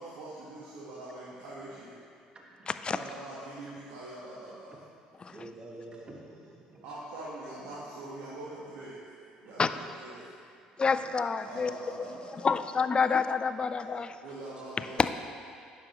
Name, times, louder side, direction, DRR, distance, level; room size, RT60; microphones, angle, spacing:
voice 1, 0.0-1.9 2.9-4.8 6.8-9.0 9.4-10.2 11.4-12.4 14.2-15.1, right 2 dB, 80° right, -8 dB, 1.3 m, -43 dB
voice 2, 2.3-2.7 5.3-6.8 9.4-9.5 10.7-10.9 13.0-13.1 13.8-14.0, right 2 dB, 30° right, -1 dB, 1.1 m, -48 dB
voice 3, 10.8-11.7 12.4-14.1 15.0-15.1, left 5 dB, 30° left, 11 dB, 0.4 m, -27 dB
9.6 x 6.2 x 3.0 m, 2.3 s
supercardioid pair, 70°, 3 cm